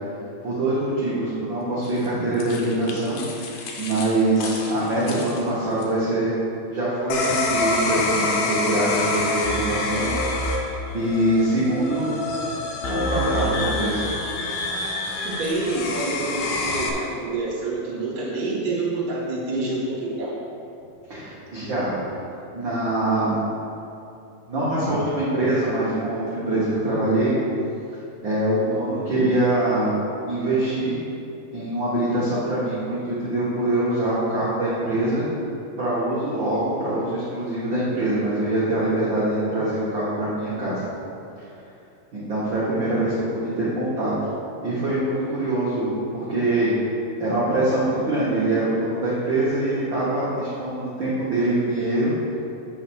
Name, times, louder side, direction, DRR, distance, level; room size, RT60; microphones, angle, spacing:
voice 1, 0.4-6.3 6.7-10.1 10.6-12.1 12.9-14.0 21.1-22.0 22.5-23.6 24.5-27.4 28.2-29.9 30.3-31.0 31.5-35.2 35.8-40.8 42.1-44.1 44.6-46.7 47.2-52.1, right 1 dB, 85° right, -9 dB, 1.0 m, -24 dB
sound 1, 1.8-5.9, left 4 dB, 75° left, 2.1 m, -37 dB
sound 2, 7.1-16.9, left 2 dB, 90° left, 2.8 m, -26 dB
voice 2, 15.2-20.4, right 2 dB, 40° right, -6 dB, 2.3 m, -27 dB
8.8 x 3.9 x 6.2 m, 2.7 s
omnidirectional pair, 4.4 m